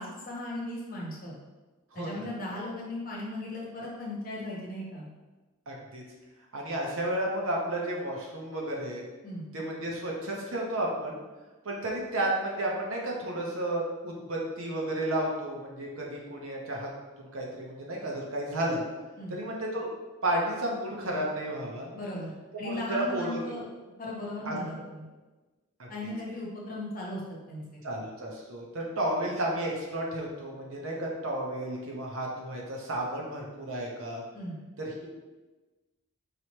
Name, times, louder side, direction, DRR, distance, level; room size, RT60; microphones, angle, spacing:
voice 1, 0.0-1.4 1.9-5.1 9.2-9.5 19.2-19.4 21.9-23.7 24.0-25.1 25.9-27.8 34.3-34.6, left 1 dB, 40° left, -4 dB, 1.0 m, -37 dB
voice 2, 1.9-2.2 5.7-6.0 6.5-9.0 9.5-11.2 11.6-16.9 17.2-18.8 19.3-19.9 20.2-21.9 22.6-23.5 24.5-24.6 25.8-25.9 27.8-34.2 34.8-35.1, right 1 dB, 65° right, -2 dB, 0.9 m, -32 dB
4.9 x 3.0 x 3.0 m, 1.2 s
head